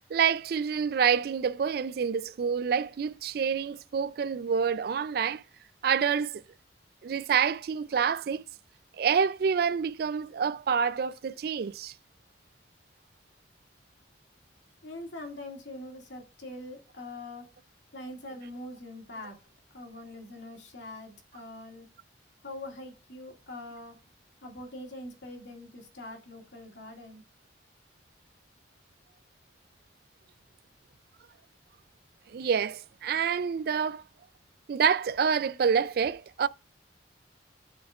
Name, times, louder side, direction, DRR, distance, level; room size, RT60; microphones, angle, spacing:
voice 1, 0.1-5.4 5.8-6.4 7.0-8.4 9.0-11.9 32.3-34.0 34.7-36.5, right 7 dB, 55° right, 0.3 m, -27 dB
voice 2, 14.8-17.5 17.9-19.4 19.7-21.9 22.4-24.0 24.4-27.2, left 1 dB, 80° left, 2.1 m, -43 dB
12.0 x 4.3 x 2.4 m
head